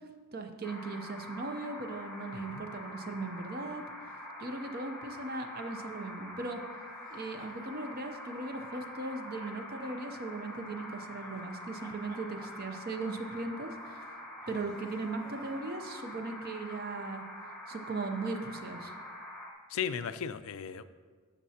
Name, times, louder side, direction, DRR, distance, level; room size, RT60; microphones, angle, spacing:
voice 1, 0.3-3.8 4.4-6.6 7.1-14.0 14.5-17.2 17.7-18.9, right 3 dB, 40° right, 6 dB, 0.6 m, -38 dB
sound 1, 0.6-19.5, left 1 dB, 5° left, 1.0 m, -45 dB
voice 2, 2.3-2.6 19.7-20.8, left 7 dB, 65° left, 13 dB, 0.4 m, -36 dB
sound 2, 6.9-7.8 8.7-11.5 11.8-15.7, equal, 15° right, 0.8 m, -57 dB
12.0 x 7.2 x 2.8 m, 1.5 s
head